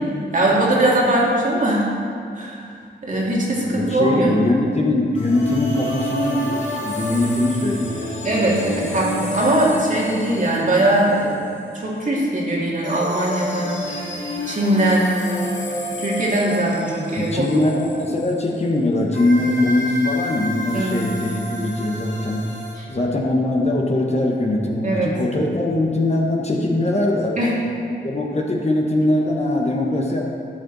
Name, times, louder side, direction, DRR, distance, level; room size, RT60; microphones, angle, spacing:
voice 1, 0.3-1.9 2.4-2.7 3.0-4.4 8.2-11.4 11.7-14.1 14.5-15.1 16.0-17.5 20.7-21.0 22.8-22.9 24.8-25.1 27.4-27.6, right 1 dB, 45° right, -5 dB, 2.3 m, -20 dB
voice 2, 3.6-8.9 17.2-22.5 22.9-27.4 28.0-30.2, left 1 dB, 35° left, 0 dB, 1.1 m, -21 dB
sound 1, 5.1-11.8 12.8-18.6 19.1-22.7, equal, 75° left, 2.6 m, -30 dB
12.0 x 6.9 x 4.0 m, 2.4 s
wide cardioid pair, 90°, 19 cm